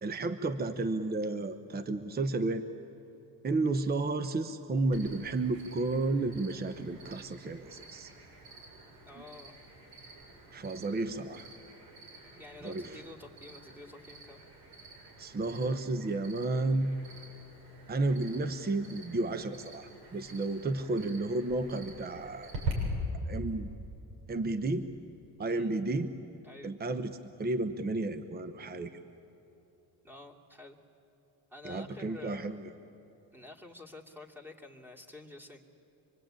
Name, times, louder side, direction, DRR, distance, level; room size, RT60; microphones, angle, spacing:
voice 1, 0.0-2.6 3.4-8.1 10.5-11.5 12.6-13.0 15.2-16.9 17.9-22.5 23.3-23.7 24.3-24.9 25.4-26.1 26.6-28.9 31.6-32.6, right 2 dB, 25° right, 10 dB, 1.0 m, -32 dB
Cricket, 4.9-22.7, right 3 dB, 70° right, 7.6 m, -47 dB
voice 2, 9.0-9.6 12.4-14.4 20.8-21.0 25.5-25.9 26.4-26.7 30.0-30.8 31.5-32.6 33.3-35.6, left 2 dB, 5° right, 0 dB, 2.8 m, -50 dB
26.0 x 23.0 x 9.0 m, 2.9 s
cardioid pair, 115°, 39 cm